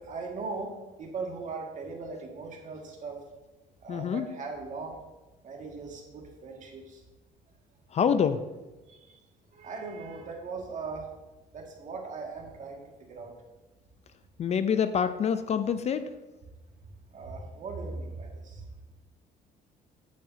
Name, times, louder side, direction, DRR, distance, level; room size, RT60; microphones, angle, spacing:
voice 1, 0.0-3.2 3.8-5.0 5.4-7.0 8.9-9.2 9.5-11.1 11.5-13.3 17.1-18.6, right 4 dB, 50° right, 1 dB, 1.9 m, -39 dB
voice 2, 3.9-4.3 7.9-8.4 14.4-16.1, left 7 dB, 40° left, 11 dB, 0.5 m, -26 dB
8.7 x 8.6 x 2.7 m, 1.1 s
cardioid pair, 110°, 17 cm